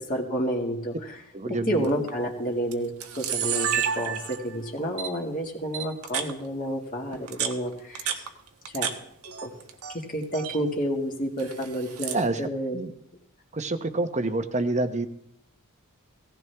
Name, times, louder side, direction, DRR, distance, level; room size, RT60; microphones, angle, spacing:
voice 1, 0.1-1.2 1.7-8.3 8.7-8.9 9.2-9.5 9.9-12.8, equal, 40° left, 0 dB, 2.0 m, -30 dB
voice 2, 1.3-1.9 12.1-12.9 13.5-15.1, right 2 dB, 30° right, 9 dB, 1.0 m, -28 dB
Camera, 1.8-2.1 2.7-2.8 3.0-4.6 5.0-5.1 5.7-6.3 7.1-8.9 9.2-9.9 10.2-10.6 11.4-12.2, right 8 dB, 80° right, 1.4 m, -30 dB
17.5 x 15.5 x 3.5 m, 0.72 s
head